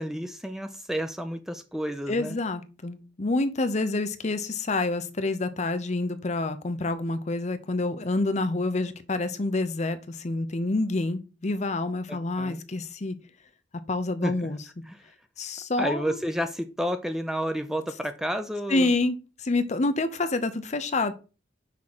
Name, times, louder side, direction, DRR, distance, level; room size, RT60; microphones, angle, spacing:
voice 1, 0.0-2.4 12.1-12.6 14.2-14.3 14.8-15.1 15.8-18.9, equal, 5° right, 0.4 m, -31 dB
voice 2, 2.1-13.1 13.9-14.6 15.4-16.2 18.7-21.1, left 2 dB, 40° left, 0.7 m, -27 dB
5.8 x 3.7 x 6.0 m
head